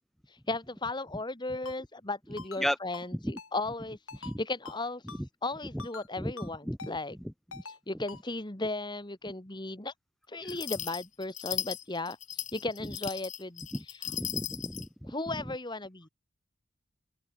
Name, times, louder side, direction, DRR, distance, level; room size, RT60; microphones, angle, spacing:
voice 1, 0.3-5.0 5.4-7.2 7.6-9.9 10.3-14.0 15.1-16.1, left 2 dB, 20° left, 1.8 m, -36 dB
Ringtone, 1.7-1.8 2.4-2.6 2.9-3.1 3.4-3.5 4.1-4.4 4.7-4.8 5.1-5.2 5.8-6.1 6.4-6.5 6.8-6.9 7.5-7.8 8.1-8.2, left 5 dB, 90° left, 7.1 m, -45 dB
voice 2, 6.2-6.8 7.2-7.6 13.7-15.5, equal, ahead, 3.6 m, -35 dB
sound 1, 10.5-14.9, left 11 dB, 40° left, 2.9 m, -37 dB
open air
head